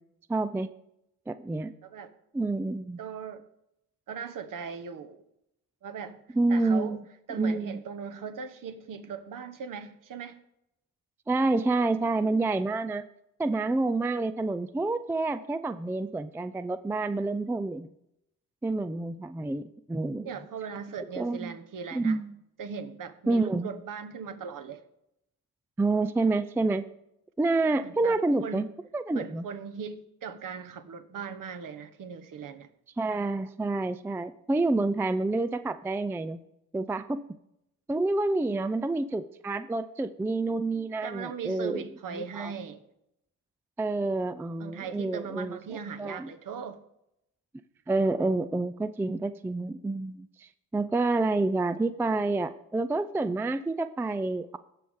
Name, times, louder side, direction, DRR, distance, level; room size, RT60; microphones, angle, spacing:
voice 1, 0.3-0.7 1.3-1.7 2.3-3.0 6.4-7.0 7.4-7.8 11.3-13.1 13.4-17.9 18.6-20.3 21.1-21.6 21.9-22.4 23.3-23.7 25.8-26.9 27.4-28.7 28.9-29.4 33.0-36.4 36.7-37.3 37.9-41.8 42.1-42.5 43.8-46.3 47.9-54.6, right 2 dB, 5° right, 13 dB, 0.3 m, -28 dB
voice 2, 3.0-3.4 4.1-5.2 5.8-6.2 6.5-7.0 7.3-10.4 20.2-22.2 22.6-24.8 27.8-28.7 29.1-32.7 41.0-42.8 44.6-46.8, right 6 dB, 55° right, 8 dB, 1.1 m, -39 dB
16.5 x 6.2 x 3.6 m, 0.82 s
supercardioid pair, 65°, 39 cm